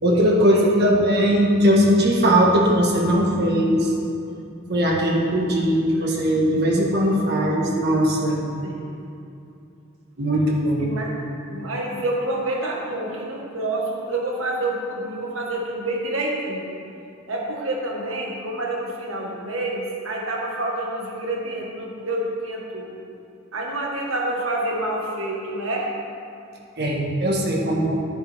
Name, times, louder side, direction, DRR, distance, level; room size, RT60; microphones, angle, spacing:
voice 1, 0.0-0.5 0.8-3.9 4.7-8.4 10.2-10.8 26.8-27.9, equal, 55° right, -2 dB, 1.6 m, -19 dB
voice 2, 10.8-11.2 11.5-16.7 17.3-23.0 23.5-25.9, right 1 dB, 80° right, -2 dB, 1.8 m, -28 dB
11.0 x 9.7 x 3.7 m, 2.6 s
head